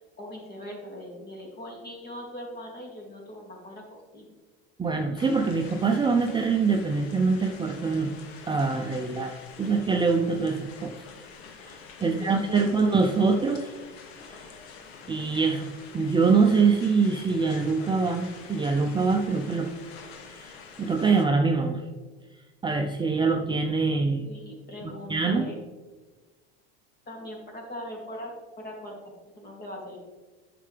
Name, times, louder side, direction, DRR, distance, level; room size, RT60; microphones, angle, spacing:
voice 1, 0.2-4.3 12.0-12.7 24.2-25.7 27.1-30.0, equal, 30° left, -1 dB, 2.8 m, -41 dB
voice 2, 4.8-8.1 8.5-11.0 11.6-13.7 14.3-14.4 15.1-19.7 20.3-21.8 22.6-24.3 24.8-25.5, right 4 dB, 15° right, 2 dB, 0.6 m, -24 dB
sound 1, 5.2-21.2, left 5 dB, 75° left, 1.4 m, -46 dB
9.8 x 6.7 x 3.4 m, 1.3 s
hypercardioid pair, 95°, 32 cm